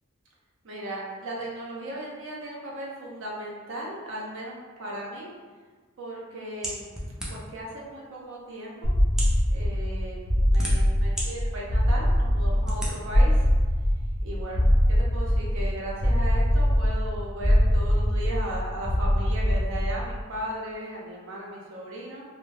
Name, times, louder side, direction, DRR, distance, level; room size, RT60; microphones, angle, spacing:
voice 1, 0.6-5.3 6.0-6.9 7.3-8.9 9.5-10.2 10.5-13.4 14.2-22.2, right 1 dB, 60° right, -4 dB, 0.6 m, -36 dB
sound 1, 6.6-7.6 8.4-8.5 9.1-9.4 10.2-11.3 11.8-11.9 12.6-12.9, equal, 5° right, 0.4 m, -33 dB
sound 2, 8.8-20.2, equal, 50° left, 0.6 m, -23 dB
2.5 x 2.1 x 3.2 m, 1.5 s
head